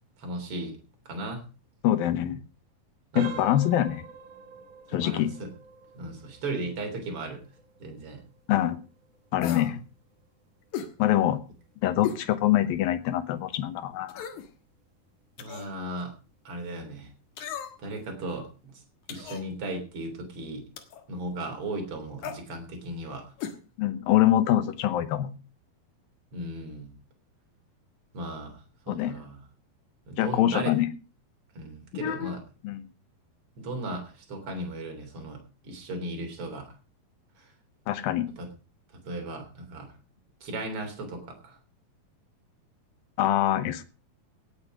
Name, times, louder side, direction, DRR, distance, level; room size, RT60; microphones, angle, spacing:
voice 1, 0.2-0.8 1.1-1.4 3.1-3.4 4.9-5.5 5.9-7.4 7.8-8.2 15.4-16.1 16.4-17.1 17.8-18.7 19.1-20.6 21.1-23.3 26.3-26.9 28.1-29.4 30.1-30.7 31.6-32.4 33.6-35.4 35.6-36.7 37.4-37.5 38.2-38.5 39.1-39.9 40.4-41.6, right 2 dB, 40° right, 3 dB, 4.1 m, -36 dB
voice 2, 1.8-2.4 3.2-4.0 4.9-5.3 8.5-8.8 9.3-9.8 11.0-11.4 11.8-14.3 23.8-25.3 28.9-29.2 30.2-30.9 31.9-32.4 32.6-32.8 37.9-38.3 43.2-43.8, left 12 dB, 75° left, 12 dB, 2.8 m, -24 dB
sound 1, 3.1-13.8 14.2-14.4 15.0-15.1 15.6-15.7, right 6 dB, 60° right, 3.1 m, -47 dB
sound 2, 9.4-9.8 10.7-10.9 12.0-12.3 12.7-12.8 14.1-14.5 15.4-15.7 17.4-17.9 19.1-19.5 20.8-21.0 22.2-22.4 23.4-23.6 23.8-23.9, left 8 dB, 60° left, 2.7 m, -36 dB
18.5 x 8.6 x 4.9 m, 0.34 s
omnidirectional pair, 4.3 m